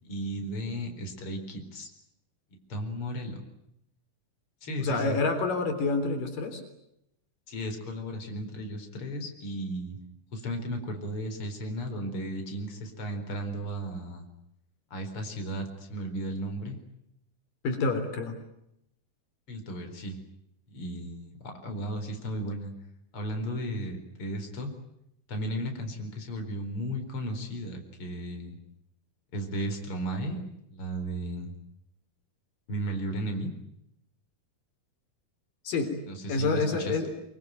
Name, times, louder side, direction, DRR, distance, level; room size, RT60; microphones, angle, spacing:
voice 1, 0.0-1.9 2.7-3.4 4.6-5.2 7.5-10.0 10.3-14.2 14.9-16.8 19.5-20.2 20.7-22.7 23.1-24.7 25.3-28.6 29.3-30.4 30.7-31.5 32.7-33.5 36.1-37.0, right 1 dB, 40° left, 5 dB, 5.1 m, -35 dB
voice 2, 4.8-6.6 17.6-18.4 35.7-35.9 36.3-37.1, left 3 dB, 90° left, 7 dB, 5.3 m, -28 dB
25.5 x 23.5 x 9.3 m, 0.79 s
omnidirectional pair, 3.8 m